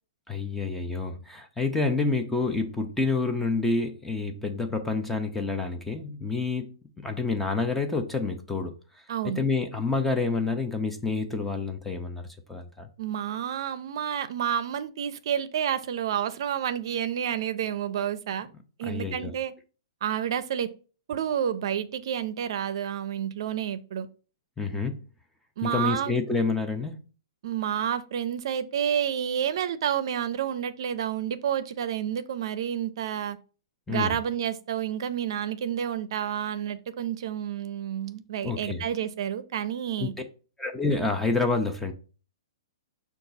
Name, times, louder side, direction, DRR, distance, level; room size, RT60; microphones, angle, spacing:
voice 1, 0.3-8.7 9.2-12.9 18.8-19.3 24.6-25.0 25.6-27.0 33.9-34.2 38.4-38.9 40.0-40.1 40.6-41.9, left 3 dB, 5° left, 0.5 m, -28 dB
voice 2, 9.1-9.4 13.0-18.5 18.8-19.5 20.0-20.7 21.1-24.1 25.6-26.1 27.4-33.4 33.9-40.1, right 9 dB, 60° right, 0.5 m, -29 dB
5.7 x 2.3 x 3.9 m
hypercardioid pair, 150°, 3 cm